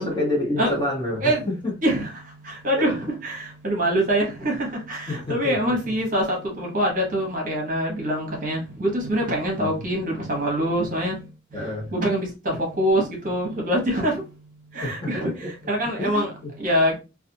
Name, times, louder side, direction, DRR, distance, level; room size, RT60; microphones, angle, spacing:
voice 1, 0.0-1.7 2.8-2.9 5.1-5.7 9.6-9.7 11.5-11.9 14.8-15.5 16.0-16.5, left 1 dB, 25° left, 0.9 m, -28 dB
voice 2, 2.4-11.2 11.9-14.2 14.7-15.3 15.7-16.3 16.6-17.0, equal, 45° right, 0.9 m, -24 dB
2.5 x 2.3 x 2.6 m
head